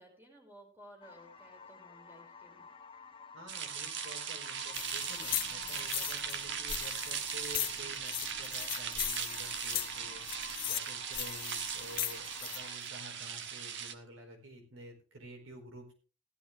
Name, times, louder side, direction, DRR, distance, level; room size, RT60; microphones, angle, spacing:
voice 1, 0.0-2.7, equal, 10° right, 2 dB, 4.7 m, -56 dB
sound 1, 1.0-12.8, left 6 dB, 25° left, 1.7 m, -52 dB
voice 2, 3.3-15.9, right 1 dB, 80° right, 3 dB, 4.3 m, -51 dB
sound 2, 3.5-13.9, right 8 dB, 65° right, 1.3 m, -39 dB
sound 3, 4.7-12.6, left 12 dB, 45° left, 0.9 m, -39 dB
15.5 x 12.5 x 3.3 m, 0.35 s
head